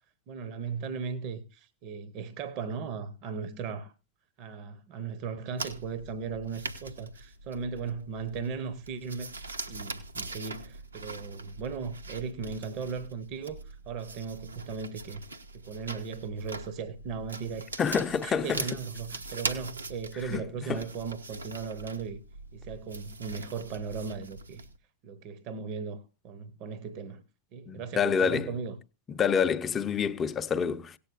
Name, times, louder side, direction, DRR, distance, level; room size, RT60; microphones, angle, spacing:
voice 1, 0.3-3.9 4.4-15.2 15.5-22.2 22.5-24.6 25.0-27.2 27.5-28.8, right 5 dB, 40° right, 0.9 m, -37 dB
sound 1, 5.6-24.8, right 3 dB, 80° right, 1.0 m, -42 dB
voice 2, 17.8-18.6 20.3-20.8 27.7-28.5 29.1-31.0, left 6 dB, 20° left, 0.7 m, -28 dB
18.0 x 8.5 x 2.5 m
figure-of-eight pair, 90°, 0 cm